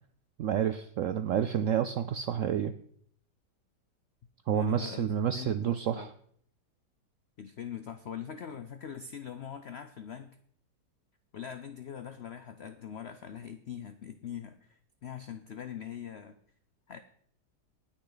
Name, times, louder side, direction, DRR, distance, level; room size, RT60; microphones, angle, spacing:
voice 1, 0.4-2.7 4.5-6.1, right 9 dB, 80° right, 11 dB, 0.7 m, -29 dB
voice 2, 4.5-5.1 5.3-6.1 7.4-10.4 11.3-16.4 16.9-17.0, left 8 dB, 80° left, 10 dB, 0.5 m, -42 dB
19.0 x 6.4 x 4.0 m, 0.64 s
omnidirectional pair, 1.9 m